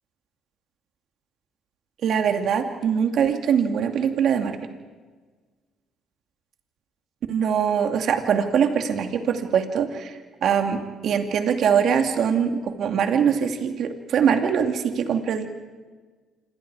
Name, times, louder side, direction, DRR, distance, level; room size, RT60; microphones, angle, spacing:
voice 1, 2.0-4.6 7.3-10.1 10.4-15.5, right 7 dB, 65° right, 5 dB, 2.5 m, -22 dB
27.0 x 24.5 x 4.9 m, 1.4 s
hypercardioid pair, 55°, 0 cm